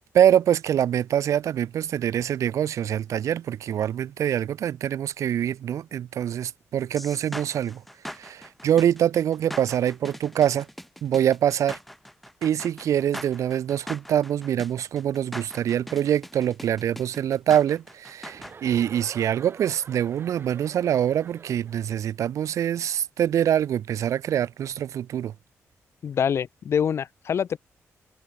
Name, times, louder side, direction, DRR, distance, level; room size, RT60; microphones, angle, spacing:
voice 1, 0.0-7.8 8.2-10.7 11.0-11.8 12.4-25.3, right 10 dB, 75° right, 0.4 m, -24 dB
sound 1, 7.0-18.5, equal, ahead, 0.9 m, -41 dB
Chuckle chortle, 18.2-22.0, right 5 dB, 45° right, 1.1 m, -46 dB
voice 2, 26.0-27.6, left 8 dB, 55° left, 0.4 m, -25 dB
cardioid pair, 100°, 5 cm